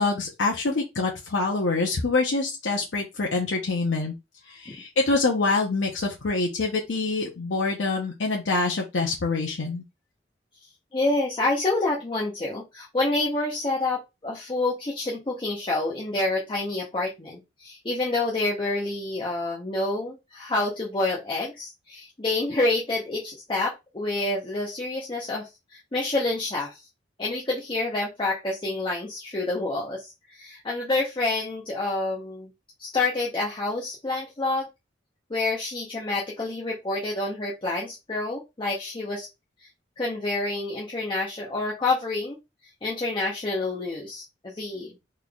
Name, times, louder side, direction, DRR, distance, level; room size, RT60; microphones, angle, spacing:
voice 1, 0.0-4.1 4.5-9.8, left 3 dB, 80° left, 0 dB, 0.7 m, -25 dB
voice 2, 10.9-26.8 27.2-32.5 32.8-34.7 35.3-39.3 39.6-39.7 40.0-42.4 42.8-44.9, left 2 dB, 25° left, -4 dB, 0.7 m, -28 dB
4.0 x 3.2 x 2.3 m, 0.23 s
head